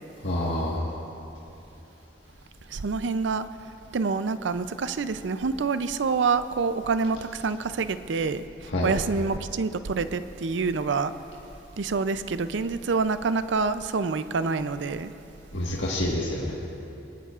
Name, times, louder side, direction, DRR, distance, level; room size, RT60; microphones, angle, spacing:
voice 1, 0.2-0.9 8.7-8.9 15.5-16.5, left 1 dB, 90° left, -5 dB, 1.6 m, -27 dB
voice 2, 2.7-3.5 3.9-11.1 11.8-15.1, right 4 dB, 80° right, 12 dB, 0.5 m, -27 dB
22.5 x 18.5 x 2.5 m, 2.9 s
head